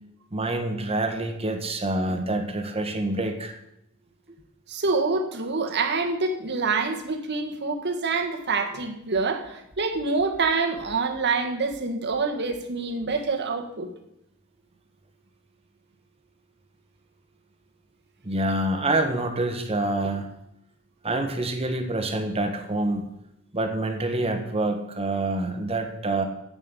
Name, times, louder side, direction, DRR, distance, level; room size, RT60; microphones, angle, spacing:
voice 1, 0.3-3.5 18.2-20.3 21.0-23.0 23.5-26.2, right 2 dB, 30° right, 5 dB, 1.5 m, -26 dB
voice 2, 4.7-13.9, right 4 dB, 50° right, 5 dB, 1.5 m, -26 dB
8.0 x 7.5 x 8.3 m, 0.81 s
head